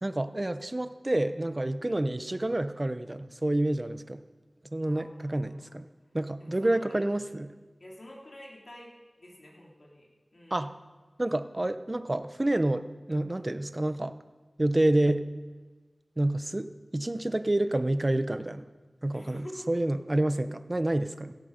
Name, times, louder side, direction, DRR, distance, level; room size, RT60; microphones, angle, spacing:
voice 1, 0.0-4.2 4.7-5.9 6.1-7.5 10.5-10.7 11.2-14.1 14.6-15.3 16.2-18.7 19.0-21.3, right 1 dB, 35° right, 11 dB, 0.8 m, -28 dB
voice 2, 4.8-5.8 6.4-7.0 7.8-10.7 19.1-19.9, left 1 dB, 60° left, -2 dB, 3.2 m, -48 dB
16.5 x 13.0 x 5.1 m, 1.3 s
wide cardioid pair, 50°, 0 cm